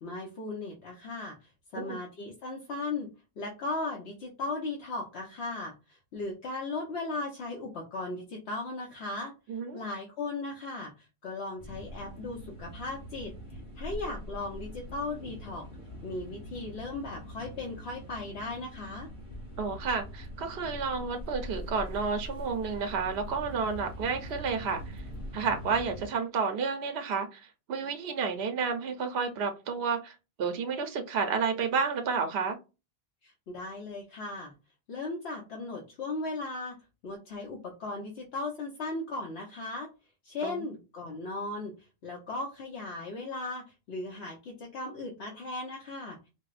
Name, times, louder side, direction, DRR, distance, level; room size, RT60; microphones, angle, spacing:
voice 1, 0.0-3.1 3.4-9.3 9.7-15.7 16.0-19.1 33.2-34.5 34.9-36.8 37.0-39.9 40.2-41.7 42.0-46.3, left 2 dB, 90° left, 1.0 m, -37 dB
voice 2, 9.5-9.8 19.6-25.0 25.3-32.6 40.4-40.6, right 5 dB, 80° right, 0.8 m, -31 dB
Lires wind and seawaves, 11.6-26.1, equal, 50° left, 1.4 m, -43 dB
4.6 x 2.0 x 2.4 m
omnidirectional pair, 1.1 m